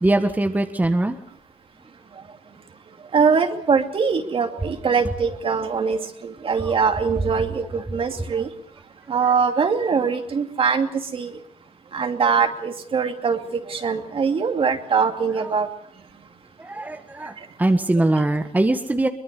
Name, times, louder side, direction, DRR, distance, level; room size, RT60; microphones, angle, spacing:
voice 1, 0.0-1.2 6.6-6.8 15.4-15.5 16.6-19.1, right 2 dB, 15° right, 6 dB, 1.6 m, -22 dB
voice 2, 3.1-8.5 9.1-11.3 11.9-15.7 18.0-18.1, right 5 dB, 45° right, 5 dB, 2.7 m, -22 dB
23.0 x 21.0 x 6.8 m, 0.65 s
cardioid pair, 90°, 13 cm